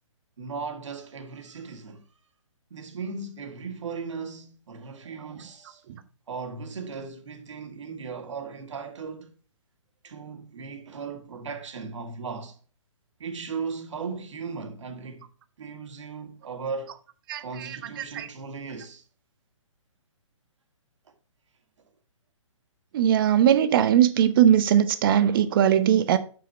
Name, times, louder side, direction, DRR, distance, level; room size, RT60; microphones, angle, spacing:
voice 1, 0.4-2.1 2.7-5.8 6.3-9.4 10.0-12.6 13.2-15.3 15.6-17.0 17.4-19.0, right 5 dB, 65° right, 2.0 m, -37 dB
voice 2, 17.3-17.8 18.1-18.3 22.9-26.2, right 10 dB, 45° right, 0.9 m, -20 dB
6.8 x 6.1 x 4.5 m
hypercardioid pair, 140°, 17 cm